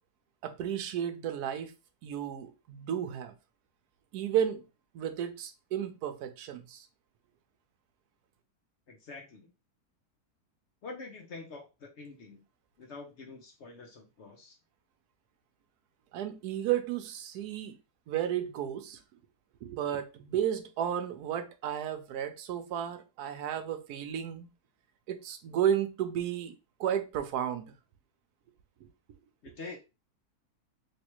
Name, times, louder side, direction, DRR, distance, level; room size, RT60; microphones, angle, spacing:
voice 1, 0.4-1.7 2.0-3.3 4.1-4.6 4.9-6.9 16.1-17.8 18.1-19.0 19.6-24.5 25.1-26.5 26.8-27.7, right 10 dB, 80° right, 1.1 m, -33 dB
voice 2, 8.9-9.5 10.8-12.4 12.8-14.5 29.4-29.8, left 3 dB, 55° left, 0.9 m, -46 dB
3.3 x 3.1 x 2.9 m
omnidirectional pair, 1.7 m